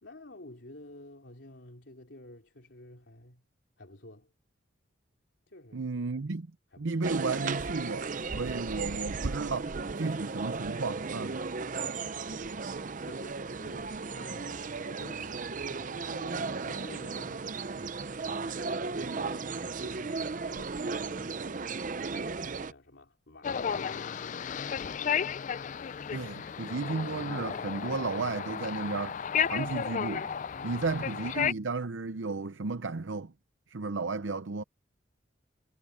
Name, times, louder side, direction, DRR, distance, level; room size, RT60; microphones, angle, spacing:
voice 1, 0.0-3.4 3.8-4.3 5.5-6.2 6.7-7.1 11.8-21.7 22.1-24.8 30.5-31.5, left 1 dB, 70° left, 3.5 m, -52 dB
voice 2, 5.7-6.5 6.8-9.6 10.0-11.4 26.1-30.3 30.6-33.3 33.7-34.6, right 3 dB, 80° right, 0.7 m, -33 dB
sound 1, 7.0-22.7, right 4 dB, 45° right, 0.6 m, -35 dB
sound 2, 23.4-31.5, left 7 dB, 40° left, 0.4 m, -33 dB
head